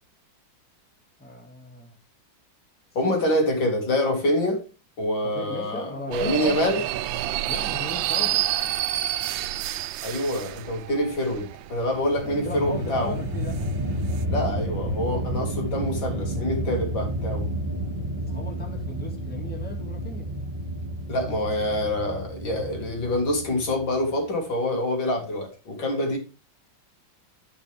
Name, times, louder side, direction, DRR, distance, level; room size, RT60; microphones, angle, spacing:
voice 1, 1.2-1.9 5.2-6.7 7.5-8.5 12.3-13.7 18.2-20.3, left 2 dB, 5° left, 1.9 m, -37 dB
voice 2, 2.9-4.6 5.0-6.8 10.0-13.1 14.3-17.5 21.1-26.2, left 1 dB, 70° left, 3.1 m, -26 dB
sound 1, 6.1-14.2, right 13 dB, 80° right, 1.3 m, -29 dB
sound 2, 11.9-24.2, right 1 dB, 25° right, 2.5 m, -31 dB
13.0 x 5.4 x 3.4 m
omnidirectional pair, 2.2 m